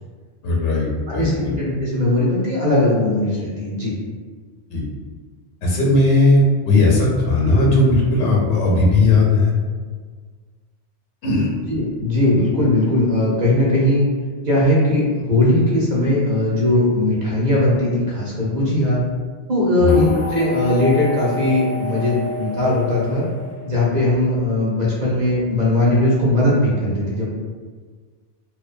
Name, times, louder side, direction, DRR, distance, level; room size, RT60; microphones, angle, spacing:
voice 1, 0.4-1.5 4.7-4.8 5.6-9.5 11.2-11.5 19.8-20.0, left 2 dB, 80° left, -3 dB, 0.9 m, -17 dB
voice 2, 1.1-3.9 11.7-14.0 14.4-19.0 19.5-23.2 23.6-27.3, left 1 dB, 50° right, -6 dB, 0.6 m, -19 dB
sound 1, 19.9-24.1, left 1 dB, 40° left, 0.5 m, -30 dB
2.5 x 2.1 x 2.4 m, 1.5 s
omnidirectional pair, 1.2 m